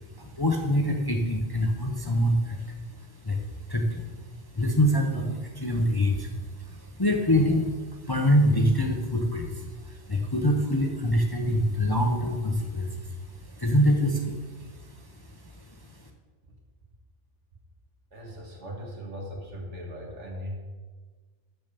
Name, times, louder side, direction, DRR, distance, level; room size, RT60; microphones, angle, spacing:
voice 1, 0.1-2.6 3.2-3.4 3.7-4.0 4.5-6.3 6.7-7.7 8.1-13.1 13.6-14.4, equal, 20° left, 1 dB, 0.8 m, -24 dB
voice 2, 18.1-20.6, equal, 70° right, 0 dB, 2.2 m, -38 dB
7.0 x 6.9 x 6.9 m, 1.4 s
omnidirectional pair, 1.2 m